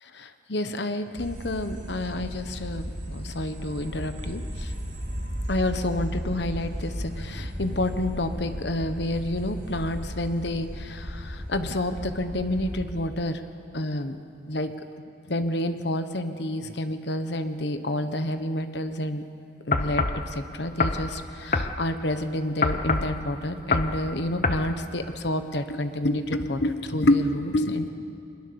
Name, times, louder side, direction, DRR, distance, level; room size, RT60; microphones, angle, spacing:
voice 1, 0.0-4.7 5.5-13.4 13.7-14.2 14.5-14.7 15.3-19.2 19.7-27.9, left 1 dB, 65° left, 9 dB, 1.2 m, -28 dB
sound 1, 1.2-12.8, equal, 55° right, 5.2 m, -35 dB
sound 2, 19.7-20.2 20.8-21.0 21.5-21.7 22.6-23.1 23.7-24.0 24.4-24.7, left 3 dB, 40° left, 0.9 m, -24 dB
24.0 x 20.5 x 7.0 m, 2.5 s
head